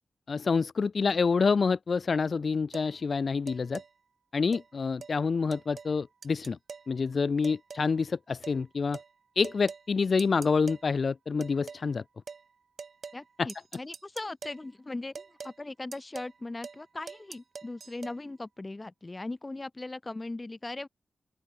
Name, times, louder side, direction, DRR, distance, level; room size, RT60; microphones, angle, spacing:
voice 1, 0.3-3.8 4.3-6.6 6.9-9.0 9.4-12.0 13.4-13.5, left 5 dB, 45° left, 1.1 m, -27 dB
sound 1, 2.7-2.9 3.5-3.9 4.5-4.7 5.0-5.1 5.5-5.9 6.2-6.9 7.4-7.9 8.4-8.6 8.9-9.1 9.4-9.9 10.2-10.8 11.4-11.8 12.3-12.4 12.8-13.2 13.5-14.6 15.1-15.6 15.9-16.4 16.6-16.8 17.1-18.2, right 5 dB, 50° right, 2.7 m, -44 dB
voice 2, 13.1-20.9, left 2 dB, 20° left, 4.2 m, -39 dB
open air
wide cardioid pair, 180°, 0 cm